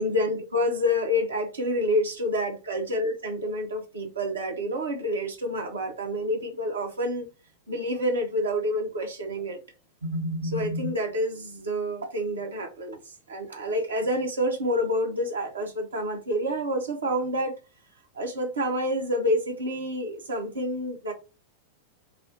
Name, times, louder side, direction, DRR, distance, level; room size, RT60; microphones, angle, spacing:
voice 1, 0.0-7.3 7.7-9.6 10.0-17.5 18.1-21.1, equal, 70° right, 1.0 m, -28 dB
4.5 x 2.0 x 2.7 m
figure-of-eight pair, 90°, 0 cm